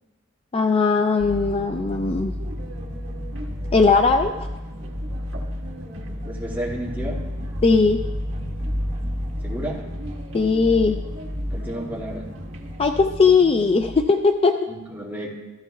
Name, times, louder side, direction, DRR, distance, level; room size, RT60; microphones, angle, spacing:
voice 1, 0.5-2.3 3.7-4.5 7.6-8.1 10.3-11.0 12.8-14.7, left 4 dB, 30° left, 6 dB, 0.4 m, -19 dB
sound 1, 1.2-14.0, equal, 35° right, 1.0 m, -31 dB
sound 2, 2.3-13.0, right 1 dB, 70° right, 1.5 m, -45 dB
voice 2, 6.2-7.2 9.4-9.8 11.5-12.3 14.7-15.3, right 1 dB, 10° right, -5 dB, 2.2 m, -31 dB
14.5 x 14.0 x 2.3 m, 1.1 s
head